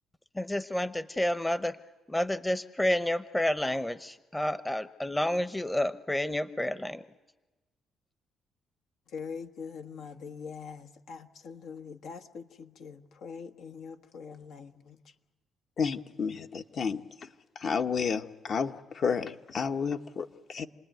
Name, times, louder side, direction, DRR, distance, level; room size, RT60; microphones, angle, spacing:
voice 1, 0.4-1.8 2.1-7.0, left 1 dB, 10° left, 0.8 m, -30 dB
voice 2, 9.1-15.0, left 6 dB, 80° left, 1.3 m, -43 dB
voice 3, 15.8-17.0 17.6-20.7, left 6 dB, 55° left, 1.2 m, -31 dB
28.5 x 20.0 x 9.2 m
cardioid pair, 90°, 0 cm